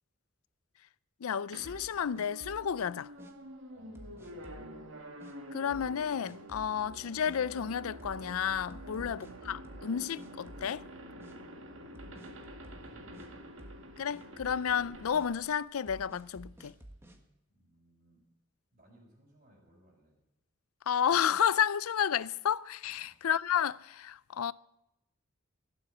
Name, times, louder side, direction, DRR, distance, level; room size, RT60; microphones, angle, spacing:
voice 1, 1.2-3.1 5.5-10.9 14.0-16.7 20.9-24.5, left 8 dB, 90° left, 0.5 m, -31 dB
sound 1, 1.5-16.3, equal, 65° right, 1.9 m, -48 dB
sound 2, 1.6-2.7 3.2-3.3 4.0-4.7 5.2-5.3 5.7-6.0 6.2-6.8 7.3-7.4 8.0-9.9 10.2-10.9 11.2-11.4 12.0-13.3 13.6-13.9 14.1-14.6 15.1-15.3 15.9-17.2, right 1 dB, 10° right, 1.6 m, -51 dB
voice 2, 3.7-4.7 11.6-13.4 17.5-18.2 18.7-20.2 22.8-23.2, right 1 dB, 35° right, 5.6 m, -62 dB
sound 3, 8.0-15.2, left 1 dB, 15° left, 4.3 m, -66 dB
17.5 x 7.9 x 8.5 m
head